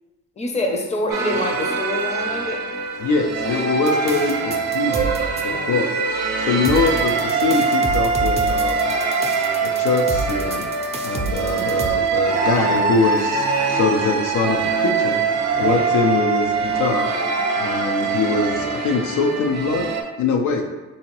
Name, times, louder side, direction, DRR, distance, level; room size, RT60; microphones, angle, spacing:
voice 1, 0.4-2.6 5.5-5.8 15.6-15.8, left 1 dB, 20° left, 2 dB, 0.6 m, -26 dB
sound 1, 1.1-20.0, right 4 dB, 60° right, 0.7 m, -23 dB
voice 2, 3.0-5.9 6.4-8.8 9.6-10.7 11.0-15.2 15.6-17.1 17.6-19.9 20.2-20.7, left 4 dB, 75° left, 3 dB, 0.5 m, -23 dB
sound 2, 3.9-5.4 6.6-11.9, right 4 dB, 20° right, 0.4 m, -29 dB
3.7 x 2.8 x 2.9 m, 1.2 s
cardioid pair, 90°, 30 cm